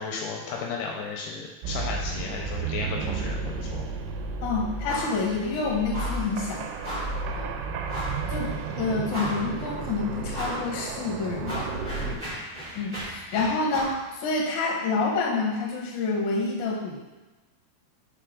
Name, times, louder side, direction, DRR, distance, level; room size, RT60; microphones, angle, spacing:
voice 1, 0.0-3.9 7.2-7.5 12.0-12.4, left 4 dB, 80° left, 0 dB, 2.6 m, -34 dB
sound 1, 1.6-12.2, right 4 dB, 90° right, 2.7 m, -33 dB
voice 2, 4.4-6.7 7.3-7.5 8.3-8.5 8.8-11.7 12.1-12.2 12.8-17.0, left 4 dB, 65° left, -3 dB, 2.0 m, -28 dB
sound 2, 4.8-5.2 5.5-5.6 5.9-6.3 6.8-7.2 7.9-8.2 8.7-8.8 9.1-9.6 10.3-10.7 11.0-14.0, equal, 35° right, 0.9 m, -35 dB
5.7 x 4.5 x 3.7 m, 1.2 s
omnidirectional pair, 4.7 m